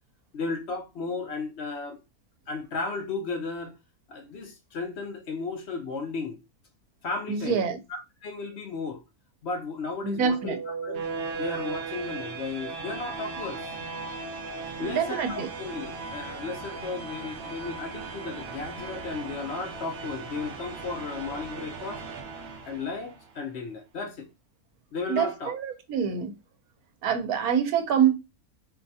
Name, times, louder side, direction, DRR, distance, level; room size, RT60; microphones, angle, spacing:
voice 1, 0.3-2.0 2.5-3.7 4.1-6.4 7.0-9.0 9.4-11.0 11.4-13.7 14.8-22.0 22.6-24.3 24.9-25.5, left 4 dB, 55° left, 0.8 m, -34 dB
voice 2, 7.3-7.8 10.0-10.6 14.8-15.5 25.1-26.3 27.0-28.1, right 7 dB, 90° right, 1.2 m, -25 dB
sound 1, 10.2-23.2, right 4 dB, 55° right, 0.8 m, -37 dB
4.6 x 2.3 x 2.7 m
omnidirectional pair, 1.5 m